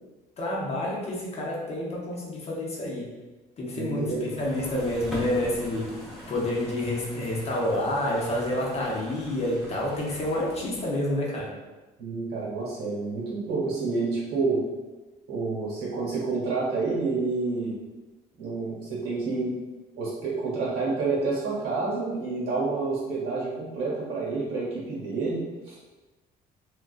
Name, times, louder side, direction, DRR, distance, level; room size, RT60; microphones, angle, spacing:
voice 1, 0.4-3.1 3.6-5.9 6.3-11.5, left 1 dB, 40° left, -4 dB, 0.7 m, -28 dB
voice 2, 3.7-4.3 12.0-14.6 15.3-17.8 18.4-19.5 20.0-25.8, right 3 dB, 75° right, -6 dB, 1.1 m, -29 dB
sound 1, 4.1-11.1, equal, ahead, 0.7 m, -43 dB
2.3 x 2.3 x 2.4 m, 1.2 s
cardioid pair, 110°, 17 cm